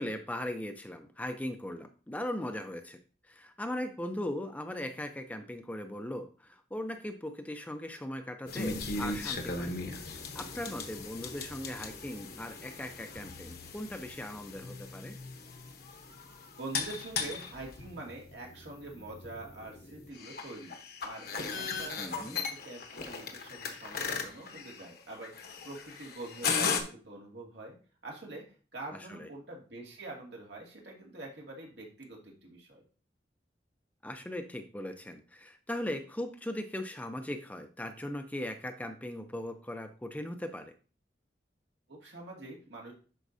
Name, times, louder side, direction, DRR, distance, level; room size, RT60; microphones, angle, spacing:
voice 1, 0.0-3.0 3.3-9.7 10.0-15.2 22.0-22.4 28.9-29.3 34.0-40.7, left 1 dB, 10° left, 6 dB, 0.5 m, -39 dB
sound 1, 8.5-26.8, left 4 dB, 60° left, 1.0 m, -38 dB
voice 2, 16.6-21.3 21.6-27.8 28.0-32.8 41.9-42.9, right 2 dB, 75° right, -1 dB, 2.2 m, -45 dB
11.0 x 4.5 x 2.7 m, 0.38 s
head